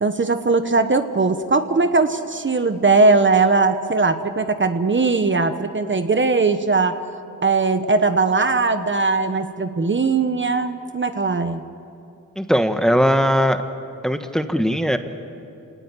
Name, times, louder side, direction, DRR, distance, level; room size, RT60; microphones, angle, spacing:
voice 1, 0.0-7.0 7.4-11.6, right 3 dB, 35° right, 8 dB, 1.3 m, -19 dB
voice 2, 12.4-13.6 14.0-15.0, equal, ahead, 7 dB, 1.5 m, -19 dB
28.0 x 18.5 x 10.0 m, 2.7 s
wide cardioid pair, 90°, 33 cm